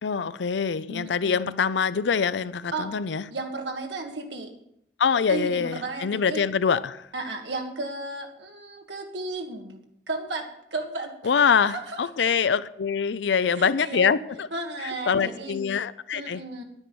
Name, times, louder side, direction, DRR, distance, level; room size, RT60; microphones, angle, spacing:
voice 1, 0.0-3.2 5.0-7.1 11.2-14.5 14.8-16.4, left 6 dB, 85° left, 0.5 m, -24 dB
voice 2, 0.9-1.5 2.7-2.9 3.3-4.5 5.3-6.4 7.1-9.8 10.1-12.0 13.5-14.1 14.5-15.6 16.1-16.6, right 2 dB, 85° right, 1.6 m, -34 dB
10.0 x 9.8 x 6.1 m
head